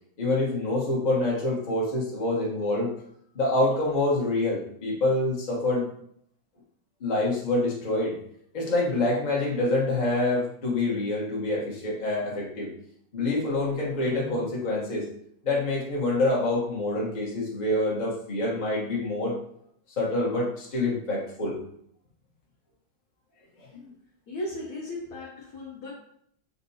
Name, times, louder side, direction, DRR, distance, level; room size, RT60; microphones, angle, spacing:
voice 1, 0.2-2.9 3.3-5.9 7.0-8.2 8.5-12.7 13.1-15.1 15.4-19.3 20.0-21.6 23.6-23.8, left 2 dB, 35° left, -4 dB, 0.7 m, -26 dB
voice 2, 24.3-25.9, left 1 dB, 60° left, -5 dB, 1.1 m, -36 dB
5.5 x 2.6 x 2.7 m, 0.68 s
omnidirectional pair, 2.3 m